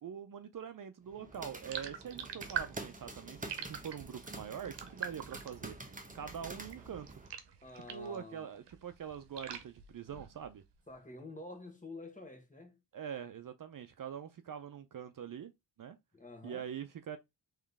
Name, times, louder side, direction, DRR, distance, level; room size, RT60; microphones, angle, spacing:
voice 1, 0.0-5.8 6.1-7.1 7.7-10.6 12.9-15.5 15.8-16.0 16.4-17.2, right 8 dB, 50° right, 0.6 m, -44 dB
sound 1, 1.1-7.3, right 2 dB, 20° right, 1.1 m, -48 dB
sound 2, 1.6-8.2 8.6-10.6, right 8 dB, 75° right, 0.9 m, -44 dB
voice 2, 7.6-8.6 10.9-12.8 16.1-16.7, left 2 dB, 20° left, 1.6 m, -49 dB
3.6 x 3.2 x 3.5 m
cardioid pair, 55°, 42 cm